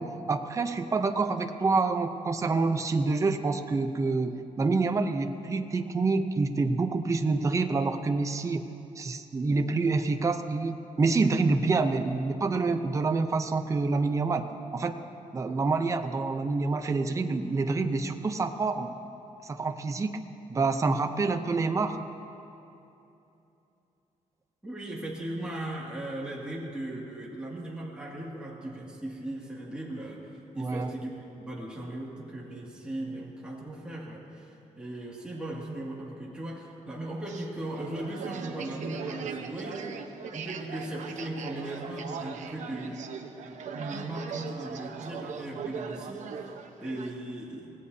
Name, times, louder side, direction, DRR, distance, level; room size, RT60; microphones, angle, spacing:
voice 1, 0.0-8.6 9.0-14.9 15.3-19.0 19.4-20.2 20.5-22.0 30.6-30.9, right 3 dB, 25° right, 7 dB, 0.6 m, -27 dB
voice 2, 24.6-31.1 31.4-40.0 40.3-46.5 46.8-47.7, right 1 dB, 5° right, -5 dB, 2.1 m, -38 dB
sound 1, 37.3-47.1, right 6 dB, 65° right, 1.0 m, -39 dB
24.5 x 18.0 x 2.7 m, 2.9 s
wide cardioid pair, 155°, 13 cm